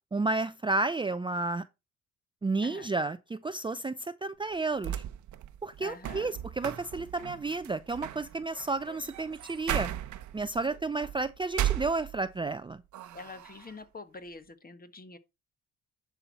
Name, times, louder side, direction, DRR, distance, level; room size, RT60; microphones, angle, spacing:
voice 1, 0.1-1.6 2.4-5.0 5.6-9.9 10.3-12.8, right 3 dB, 15° right, 0.5 m, -31 dB
voice 2, 2.6-2.9 5.8-6.4 13.1-15.2, left 3 dB, 30° left, 1.6 m, -46 dB
sound 1, 4.5-12.5 12.9-13.7, right 12 dB, 70° right, 1.0 m, -37 dB
11.0 x 5.7 x 4.2 m
cardioid pair, 90°, 30 cm